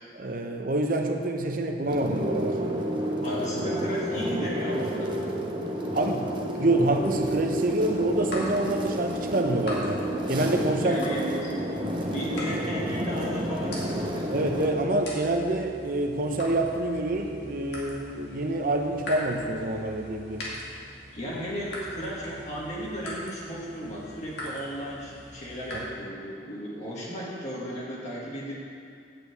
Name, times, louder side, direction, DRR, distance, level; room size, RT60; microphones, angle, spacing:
voice 1, 0.1-2.6 5.9-6.3 6.6-11.0 14.3-20.4, right 1 dB, 55° right, 3 dB, 0.8 m, -27 dB
sound 1, 1.9-14.7, equal, 30° right, 1.1 m, -30 dB
voice 2, 3.2-5.1 10.8-11.5 12.0-14.3 21.1-28.5, equal, 45° left, -6 dB, 1.8 m, -35 dB
sound 2, 7.0-25.8, left 1 dB, 80° left, 2.4 m, -42 dB
8.7 x 5.9 x 8.0 m, 2.4 s
head